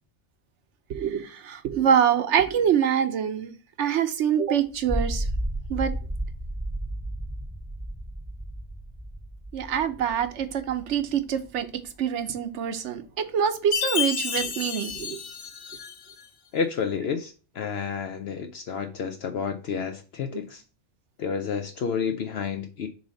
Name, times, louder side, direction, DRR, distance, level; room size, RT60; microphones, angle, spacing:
voice 1, 0.9-3.5 3.8-5.2 5.7-5.9 9.5-15.2, right 8 dB, 85° right, 1.1 m, -25 dB
sound 1, 4.7-11.2, right 1 dB, 10° right, 0.6 m, -33 dB
Chime, 13.7-16.2, left 8 dB, 85° left, 1.2 m, -30 dB
voice 2, 16.5-20.6 21.2-22.9, left 6 dB, 65° left, 0.9 m, -30 dB
6.9 x 2.8 x 5.1 m
omnidirectional pair, 1.2 m